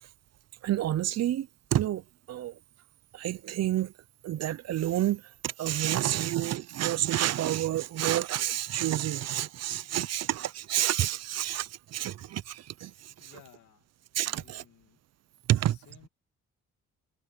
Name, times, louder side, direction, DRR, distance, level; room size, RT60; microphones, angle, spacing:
voice 1, 0.6-2.6 3.1-3.9 4.2-13.3 14.1-14.6 15.5-15.8, right 13 dB, 60° right, 0.6 m, -29 dB
voice 2, 13.2-13.9 14.3-15.0 15.6-16.1, left 11 dB, 75° left, 2.6 m, -57 dB
cardioid pair, 90°, 30 cm